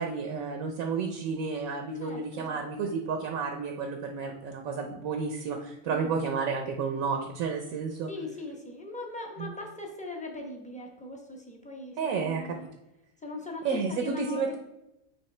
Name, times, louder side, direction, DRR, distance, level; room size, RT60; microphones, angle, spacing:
voice 1, 0.0-8.1 9.4-9.5 12.0-12.6 13.6-14.6, right 5 dB, 70° right, 4 dB, 1.0 m, -31 dB
voice 2, 2.0-2.9 5.9-6.3 8.1-12.7 13.2-14.6, left 2 dB, 5° left, 0 dB, 0.6 m, -40 dB
9.5 x 3.3 x 3.2 m, 0.91 s
omnidirectional pair, 1.6 m